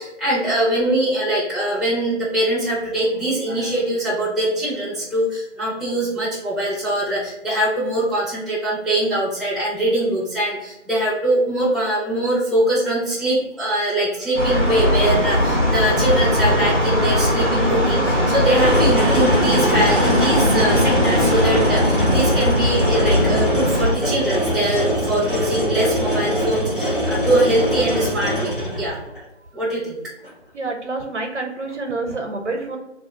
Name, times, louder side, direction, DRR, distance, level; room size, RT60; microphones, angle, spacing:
voice 1, 0.0-29.0 29.5-30.0, right 1 dB, ahead, -8 dB, 0.4 m, -22 dB
sound 1, 14.3-23.9, left 1 dB, 85° left, 1.1 m, -19 dB
sound 2, 18.4-29.2 30.2-30.3, equal, 45° left, 0.7 m, -23 dB
voice 2, 30.5-32.8, right 3 dB, 75° right, 2 dB, 0.6 m, -27 dB
2.3 x 2.1 x 2.7 m, 0.93 s
figure-of-eight pair, 175°, 36 cm